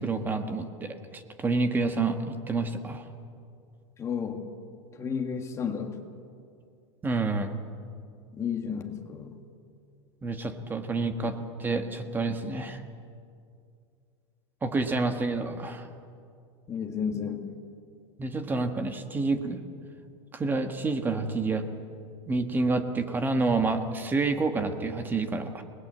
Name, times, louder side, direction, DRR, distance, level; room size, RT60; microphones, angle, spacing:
voice 1, 0.0-3.0 7.0-7.5 10.2-12.8 14.6-15.9 18.2-19.6 20.3-21.6 22.3-25.6, right 3 dB, 10° right, 7 dB, 1.5 m, -28 dB
voice 2, 4.0-4.5 5.0-6.0 8.3-9.4 16.7-17.5, left 7 dB, 20° left, 4 dB, 2.0 m, -32 dB
29.0 x 20.0 x 8.0 m, 2.4 s
supercardioid pair, 160°, 15 cm